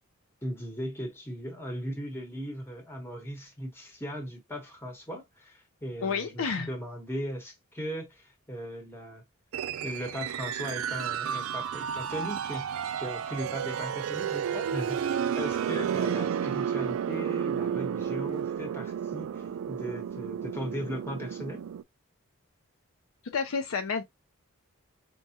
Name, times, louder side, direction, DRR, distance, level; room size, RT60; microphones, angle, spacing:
voice 1, 0.4-9.2 9.8-21.6, equal, 10° left, 1.0 m, -38 dB
voice 2, 6.0-6.7 23.3-24.0, left 5 dB, 70° left, 0.5 m, -30 dB
sound 1, 9.5-21.8, right 8 dB, 70° right, 0.3 m, -32 dB
4.6 x 2.1 x 2.8 m
head